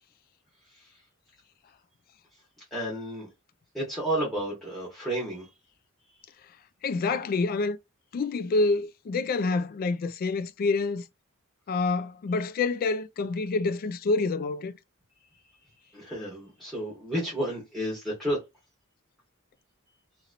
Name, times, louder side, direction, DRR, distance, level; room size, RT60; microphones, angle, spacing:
voice 1, 2.7-3.3 3.7-5.4 15.9-18.4, right 1 dB, ahead, 1.4 m, -31 dB
voice 2, 6.8-7.8 8.1-11.0 11.7-14.7, left 3 dB, 45° left, 0.3 m, -27 dB
3.0 x 2.8 x 2.5 m
head